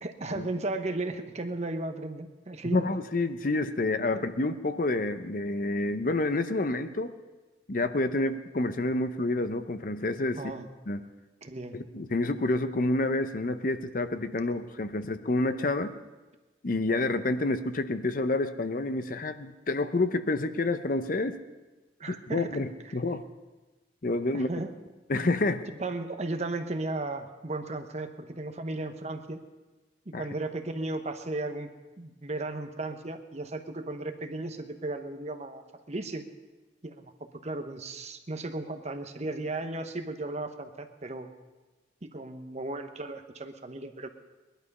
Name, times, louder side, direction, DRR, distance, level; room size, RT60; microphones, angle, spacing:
voice 1, 0.0-2.9 4.1-4.2 10.4-10.7 11.4-11.8 22.0-22.5 24.3-24.7 25.8-29.4 30.1-31.7 32.0-35.6 35.9-36.2 36.8-37.1 37.4-41.3 42.1-44.1, right 2 dB, 40° right, 7 dB, 1.0 m, -35 dB
voice 2, 2.6-7.1 7.7-10.5 10.9-11.0 11.7-15.9 16.6-21.4 22.1-23.2 24.0-24.5 25.1-25.6 30.1-30.2, left 2 dB, 50° left, 10 dB, 0.7 m, -28 dB
19.5 x 11.5 x 5.5 m, 1.2 s
head